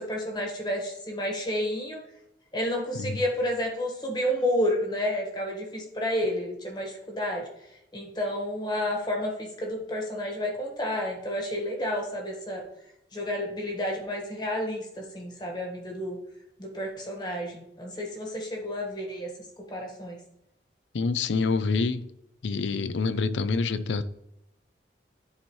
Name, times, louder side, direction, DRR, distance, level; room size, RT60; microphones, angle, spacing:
voice 1, 0.0-2.0 2.5-7.4 7.9-12.6 13.1-16.2 16.6-19.3 19.7-20.2, left 1 dB, 25° left, 1 dB, 1.5 m, -30 dB
voice 2, 20.9-22.1 22.4-24.0, left 4 dB, 90° left, 13 dB, 0.5 m, -27 dB
10.5 x 4.5 x 3.1 m, 0.83 s
head